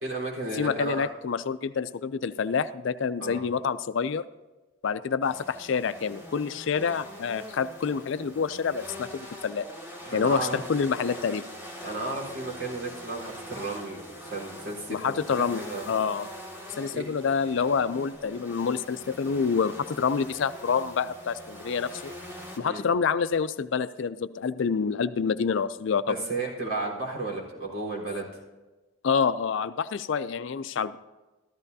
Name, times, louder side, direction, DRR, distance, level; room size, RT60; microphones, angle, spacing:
voice 1, 0.0-1.0 3.2-3.4 6.7-6.9 10.0-10.6 11.8-15.8 16.9-17.1 22.6-22.8 26.1-28.4, right 2 dB, 75° right, -3 dB, 3.9 m, -33 dB
voice 2, 0.5-4.3 4.8-9.7 10.1-11.4 14.9-16.3 16.8-22.1 22.6-26.2 29.0-31.0, left 6 dB, 65° left, 13 dB, 0.4 m, -27 dB
sound 1, 5.2-22.6, equal, 10° right, 2.1 m, -43 dB
14.0 x 13.5 x 2.7 m, 1.2 s
head